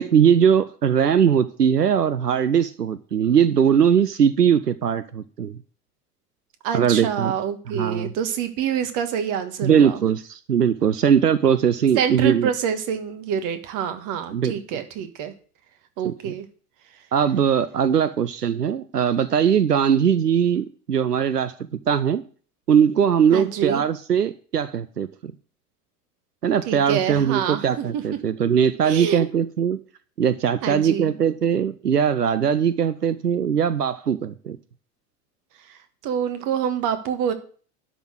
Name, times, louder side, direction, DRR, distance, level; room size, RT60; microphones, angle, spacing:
voice 1, 0.0-5.6 6.7-7.3 7.7-8.1 9.6-12.5 14.3-14.5 16.0-16.3 17.1-21.5 21.9-22.2 22.7-25.3 26.4-29.8 30.2-34.6, right 8 dB, 90° right, 14 dB, 0.6 m, -20 dB
voice 2, 6.6-10.0 11.9-15.3 16.0-16.5 23.3-23.8 26.7-28.0 28.8-29.2 30.6-31.1 35.7-35.8 36.0-37.3, right 8 dB, 40° right, 9 dB, 1.5 m, -26 dB
11.5 x 4.1 x 7.8 m, 0.43 s
figure-of-eight pair, 80°, 46 cm